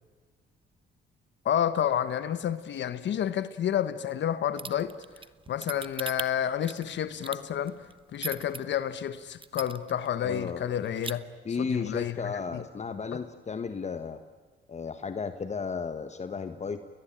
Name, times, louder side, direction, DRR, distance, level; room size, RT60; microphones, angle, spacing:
voice 1, 1.4-4.9 5.5-7.8 8.1-11.2 11.6-12.6, left 10 dB, 65° left, 13 dB, 1.2 m, -30 dB
sound 1, 4.6-8.6 9.0-9.1 9.4-10.1 10.4-10.5 10.8-11.1, right 4 dB, 25° right, 1.1 m, -38 dB
voice 2, 10.2-10.8 11.4-14.2 14.7-16.8, left 5 dB, 35° left, 9 dB, 1.4 m, -34 dB
29.5 x 21.5 x 8.9 m, 1.5 s
cardioid pair, 90°, 20 cm